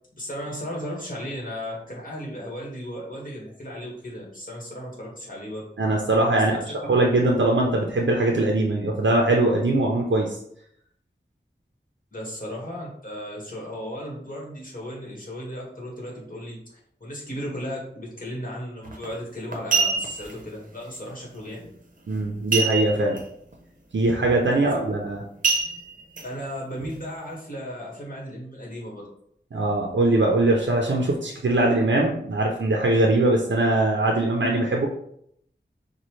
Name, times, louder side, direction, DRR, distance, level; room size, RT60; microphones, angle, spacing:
voice 1, 0.1-5.7 6.5-6.7 12.1-21.7 24.6-25.0 26.2-29.1, equal, 45° left, -4 dB, 1.6 m, -35 dB
voice 2, 5.8-10.3 22.1-23.2 23.9-25.2 29.5-34.9, right 2 dB, 85° right, 0 dB, 0.6 m, -21 dB
sound 1, 18.8-19.1 19.5-20.3 22.5-23.2 23.5-23.6 24.1-24.3 25.4-26.2 26.8-26.9, right 4 dB, 45° right, 0.7 m, -24 dB
5.3 x 2.3 x 3.1 m, 0.69 s
wide cardioid pair, 55°, 19 cm